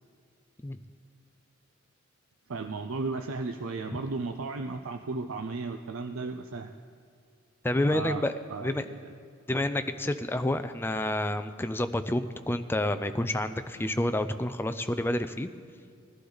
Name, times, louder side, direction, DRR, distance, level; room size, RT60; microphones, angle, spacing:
voice 1, 2.5-6.7 7.8-8.2 8.5-9.1, right 3 dB, 85° right, 6 dB, 0.5 m, -35 dB
voice 2, 7.6-8.3 8.6-8.8 9.5-15.5, left 1 dB, 10° left, 9 dB, 0.4 m, -29 dB
19.5 x 11.5 x 4.0 m, 2.2 s
head